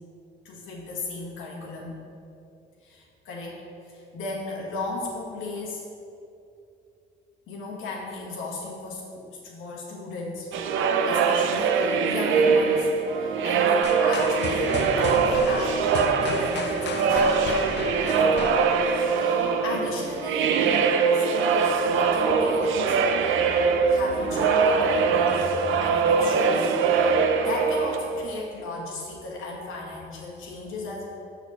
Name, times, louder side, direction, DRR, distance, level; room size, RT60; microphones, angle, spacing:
voice 1, 0.4-2.0 2.8-3.6 3.9-5.9 7.5-10.5 11.0-15.9 16.2-18.4 19.1-20.6 21.1-23.0 23.9-31.1, left 3 dB, 85° left, -3 dB, 1.7 m, -36 dB
sound 1, 10.5-28.4, right 5 dB, 80° right, 0.6 m, -22 dB
sound 2, 13.8-19.7, left 5 dB, 60° left, 0.6 m, -35 dB
6.7 x 4.1 x 6.5 m, 2.7 s
cardioid pair, 90°, 20 cm